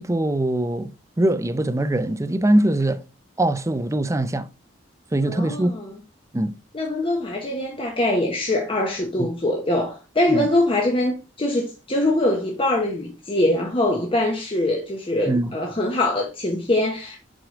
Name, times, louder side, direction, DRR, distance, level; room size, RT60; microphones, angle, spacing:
voice 1, 0.0-3.0 3.4-4.5 5.1-5.7 6.3-6.6 9.2-9.3 10.3-10.5 15.3-15.5, right 1 dB, 15° right, 0.5 m, -22 dB
voice 2, 5.3-5.9 6.7-17.2, left 1 dB, 30° left, 1.0 m, -23 dB
6.2 x 4.8 x 3.7 m
head